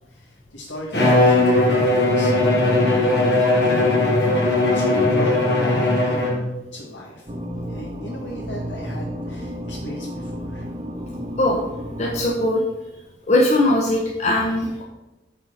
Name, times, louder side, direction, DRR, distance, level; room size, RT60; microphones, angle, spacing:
voice 1, 0.1-10.7, equal, 90° left, -3 dB, 1.6 m, -36 dB
Bowed string instrument, 0.9-6.6, left 2 dB, 65° left, 2.2 m, -18 dB
sound 1, 7.3-12.4, equal, 30° right, 0.9 m, -32 dB
voice 2, 12.0-12.6 13.3-14.8, left 1 dB, 40° left, -2 dB, 1.0 m, -20 dB
9.2 x 4.2 x 6.4 m, 1.0 s
head